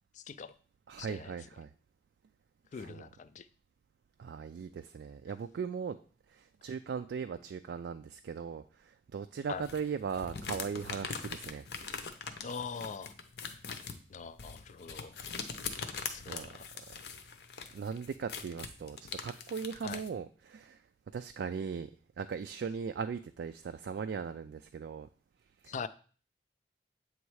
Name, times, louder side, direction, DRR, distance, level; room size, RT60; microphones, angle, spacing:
voice 1, 0.1-0.5 1.0-1.4 2.7-3.5 9.5-9.7 12.4-13.1 14.1-15.2 16.1-16.7 19.8-20.0 25.7-25.9, left 5 dB, 45° left, 14 dB, 0.3 m, -42 dB
voice 2, 0.9-1.7 2.8-3.0 4.2-6.0 6.3-11.6 16.3-16.5 17.7-20.8 21.1-21.9 22.2-25.1 25.6-25.7, right 6 dB, 70° right, 8 dB, 0.3 m, -38 dB
sound 1, 9.6-20.1, left 5 dB, 65° left, 0.7 m, -42 dB
8.0 x 3.2 x 4.7 m, 0.41 s
head